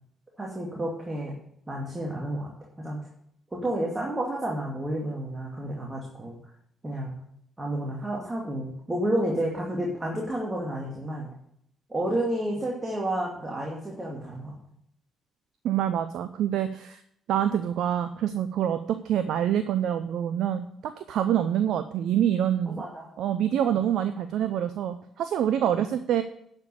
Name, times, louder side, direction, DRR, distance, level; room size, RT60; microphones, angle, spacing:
voice 1, 0.4-1.3 1.7-3.0 3.5-6.4 6.8-7.1 7.6-11.3 11.9-14.6 22.7-23.1 25.7-25.8, right 1 dB, 20° right, -2 dB, 2.4 m, -30 dB
voice 2, 15.6-17.0 17.3-22.8 23.2-26.2, right 10 dB, 60° right, 11 dB, 0.5 m, -26 dB
10.5 x 5.4 x 6.9 m, 0.70 s
figure-of-eight pair, 45°, 0 cm